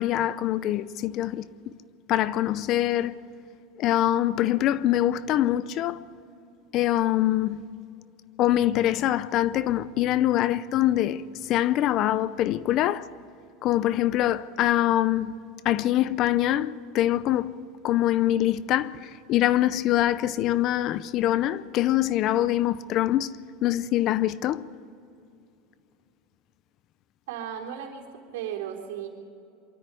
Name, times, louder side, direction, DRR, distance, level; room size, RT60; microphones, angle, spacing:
voice 1, 0.0-1.5 2.1-3.2 3.8-6.0 6.7-7.7 8.4-13.1 13.6-15.4 15.6-17.6 17.8-24.7, left 13 dB, 40° left, 0.6 m, -24 dB
voice 2, 27.3-28.1 28.3-29.1, right 9 dB, 90° right, 3.8 m, -35 dB
24.0 x 13.0 x 8.4 m
supercardioid pair, 155°, 0 cm